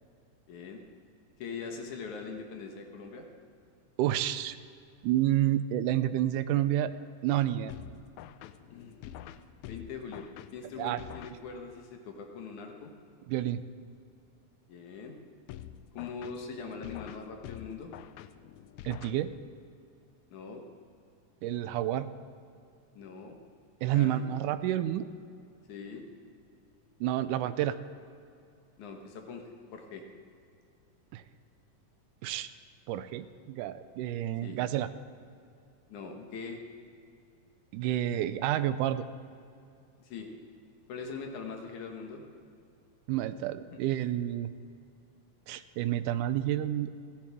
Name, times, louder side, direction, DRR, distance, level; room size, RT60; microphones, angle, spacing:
voice 1, 0.5-0.8 1.4-3.3 8.7-9.1 9.7-10.2 10.5-12.9 14.7-15.2 15.9-17.9 20.3-20.6 22.9-23.3 23.9-24.3 25.7-26.0 28.8-30.0 34.4-34.6 35.9-36.6 40.0-40.3 40.9-42.2 43.7-43.8, left 5 dB, 70° left, 3 dB, 2.5 m, -42 dB
voice 2, 4.0-4.6 5.0-6.9 7.2-7.7 10.8-11.0 13.3-13.6 18.8-19.3 21.4-22.1 23.8-25.1 27.0-27.8 31.1-31.2 32.2-32.5 32.9-34.9 37.7-39.0 43.1-44.5 45.5-46.9, right 12 dB, 80° right, 12 dB, 2.1 m, -29 dB
sound 1, 7.7-11.9 15.5-19.7, left 11 dB, 85° left, 1.7 m, -47 dB
30.0 x 10.5 x 3.5 m, 2.5 s
omnidirectional pair, 3.8 m